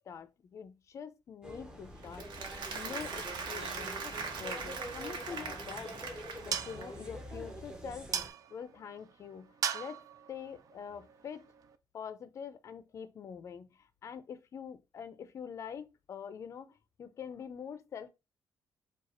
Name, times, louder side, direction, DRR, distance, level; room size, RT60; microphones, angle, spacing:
voice 1, 0.1-2.3 2.7-6.0 6.4-8.1 8.5-10.0 10.3-11.5 11.9-18.1, left 7 dB, 40° left, 0.4 m, -45 dB
sound 1, 1.4-8.3, equal, 10° right, 0.7 m, -46 dB
Applause, 2.0-7.1, right 5 dB, 75° right, 1.1 m, -41 dB
sound 2, 5.5-11.8, right 8 dB, 50° right, 0.4 m, -41 dB
4.8 x 2.3 x 4.2 m
cardioid pair, 175°, 8 cm